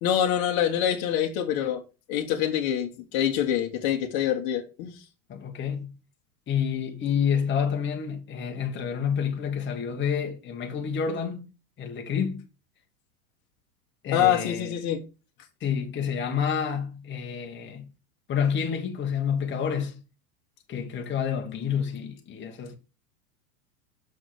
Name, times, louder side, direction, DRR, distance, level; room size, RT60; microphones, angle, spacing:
voice 1, 0.0-1.8 2.1-5.0 14.1-15.0, left 10 dB, 45° left, 1.4 m, -25 dB
voice 2, 5.3-6.0 6.5-11.5 11.8-12.4 14.0-14.7 15.6-17.9 18.3-20.0 20.7-22.8, left 7 dB, 25° left, 1.5 m, -29 dB
6.4 x 6.2 x 4.8 m
hypercardioid pair, 105°, 44 cm